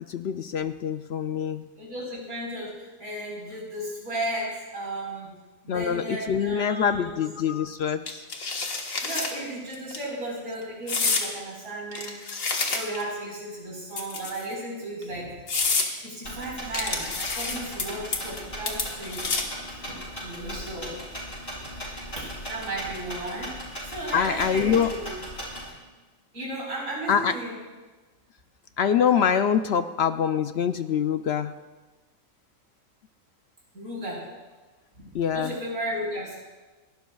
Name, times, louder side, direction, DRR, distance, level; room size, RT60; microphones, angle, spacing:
voice 1, 0.1-1.7 5.7-8.2 24.1-24.9 27.1-27.3 28.8-31.5 35.1-35.5, left 8 dB, 65° left, 9 dB, 0.7 m, -24 dB
voice 2, 1.8-5.3 5.6-7.2 9.0-12.2 12.7-15.3 16.0-19.3 19.9-20.9 22.1-23.5 23.8-25.1 26.3-27.5 33.7-34.3 35.0-36.4, right 1 dB, 85° right, -4 dB, 5.1 m, -34 dB
sound 1, 8.1-9.3 9.7-10.0 10.9-11.3 11.9-13.1 13.9-14.5 15.0-15.1 15.5-15.9 16.7-17.8 18.1-18.4 18.7-19.6, left 4 dB, 80° left, 1.8 m, -28 dB
sound 2, 16.2-25.7, equal, 40° left, 5.9 m, -38 dB
28.5 x 12.5 x 2.3 m, 1.3 s
omnidirectional pair, 1.4 m